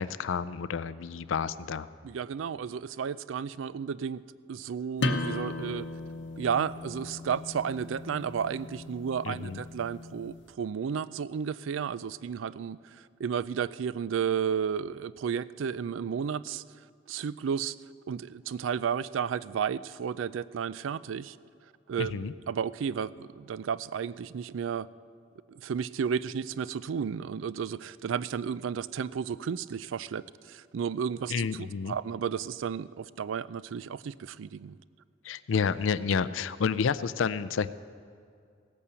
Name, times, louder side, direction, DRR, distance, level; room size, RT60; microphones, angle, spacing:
voice 1, 0.0-1.9 9.2-9.6 22.0-22.3 31.3-31.9 35.2-37.7, left 6 dB, 85° left, 16 dB, 0.4 m, -30 dB
voice 2, 2.0-4.2 4.5-5.9 6.4-16.6 17.1-17.8 18.1-21.4 21.9-24.9 25.5-34.8, right 7 dB, 85° right, 18 dB, 0.4 m, -33 dB
sound 1, 5.0-10.4, left 2 dB, 70° left, 0.9 m, -36 dB
17.0 x 8.5 x 6.9 m, 2.3 s
head